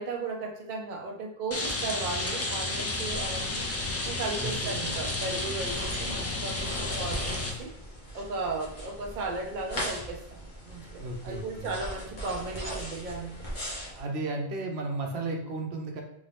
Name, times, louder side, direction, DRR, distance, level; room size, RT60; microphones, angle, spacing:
voice 1, 0.0-3.7 4.0-7.7 8.1-13.3, right 3 dB, 55° right, 2 dB, 0.7 m, -36 dB
Rain, 1.5-7.5, left 2 dB, 25° left, 0.3 m, -32 dB
sound 1, 3.1-14.0, equal, 50° left, 1.1 m, -40 dB
voice 2, 4.4-4.7 11.0-11.7 13.9-16.0, right 2 dB, 85° right, 2 dB, 1.0 m, -34 dB
3.5 x 2.6 x 3.3 m, 0.77 s
omnidirectional pair, 1.0 m